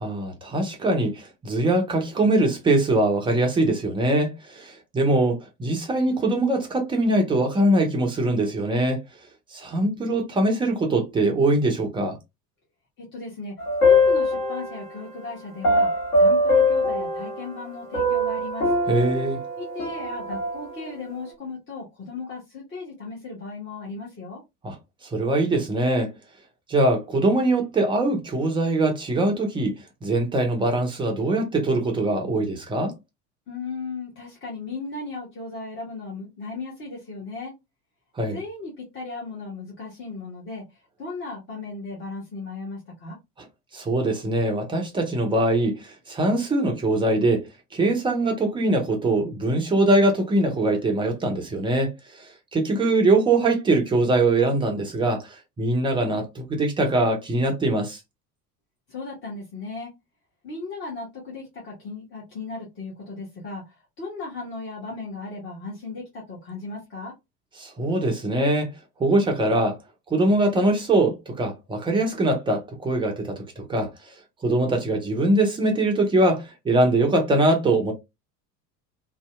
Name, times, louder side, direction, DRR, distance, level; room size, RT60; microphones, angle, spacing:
voice 1, 0.0-9.0 9.5-12.2 18.9-19.4 24.6-24.8 25.1-26.1 26.7-32.9 38.2-38.4 43.7-47.5 47.7-51.9 52.5-58.0 67.6-68.7 69.0-69.8 70.1-73.9 74.4-77.9, right 2 dB, 10° right, 0.4 m, -22 dB
voice 2, 13.0-18.7 19.6-24.4 33.5-37.5 38.3-40.6 41.0-43.2 58.9-59.9 60.4-67.1, left 3 dB, 25° left, 0.9 m, -36 dB
sound 1, 13.6-15.0 15.6-17.6 17.9-20.9, left 2 dB, 50° left, 1.3 m, -22 dB
2.6 x 2.1 x 2.3 m
figure-of-eight pair, 70°, 49 cm